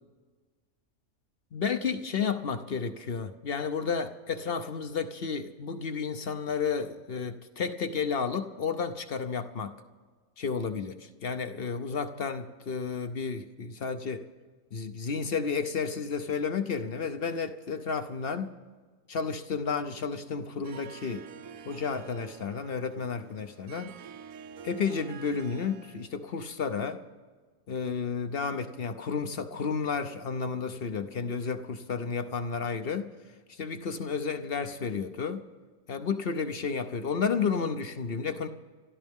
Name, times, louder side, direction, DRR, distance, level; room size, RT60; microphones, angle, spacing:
voice 1, 1.5-9.7 10.4-14.3 14.7-18.5 19.1-21.2 21.6-23.9 24.6-27.0 27.7-33.1 33.5-35.5 35.9-38.5, left 5 dB, 50° left, 8 dB, 0.8 m, -32 dB
Harp, 20.6-26.1, right 8 dB, 70° right, 1.1 m, -48 dB
27.0 x 13.0 x 3.6 m, 1.4 s
omnidirectional pair, 1.5 m